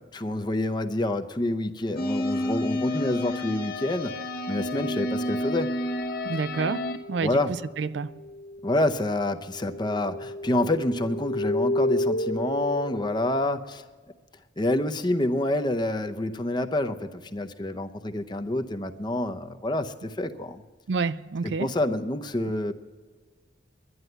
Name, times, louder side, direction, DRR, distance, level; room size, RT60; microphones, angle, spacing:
voice 1, 0.0-4.1 4.5-5.7 7.2-7.5 8.6-13.8 14.6-20.6 21.6-22.7, left 1 dB, 25° left, 0.7 m, -27 dB
sound 1, 2.0-7.0, left 1 dB, 50° left, 1.2 m, -30 dB
sound 2, 4.6-7.7 8.1-13.4, left 1 dB, 85° left, 0.8 m, -33 dB
voice 2, 6.2-7.4 7.8-8.1 20.9-21.7, right 4 dB, 70° right, 0.4 m, -28 dB
11.0 x 11.0 x 7.9 m
head